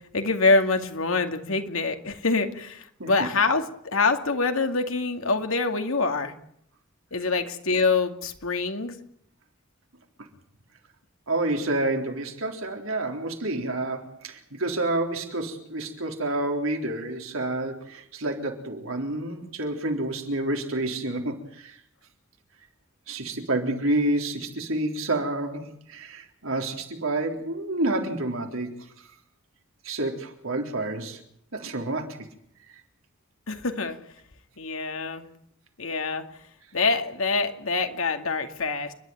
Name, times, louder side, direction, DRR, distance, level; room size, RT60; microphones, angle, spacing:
voice 1, 0.1-6.3 7.1-9.0 33.5-34.0 34.6-35.3 35.8-36.2 36.7-38.9, left 3 dB, 80° left, 2.3 m, -25 dB
voice 2, 11.3-21.7 23.1-28.9 29.8-31.2 31.5-32.3, right 2 dB, 80° right, 3.7 m, -29 dB
29.5 x 11.5 x 9.4 m
head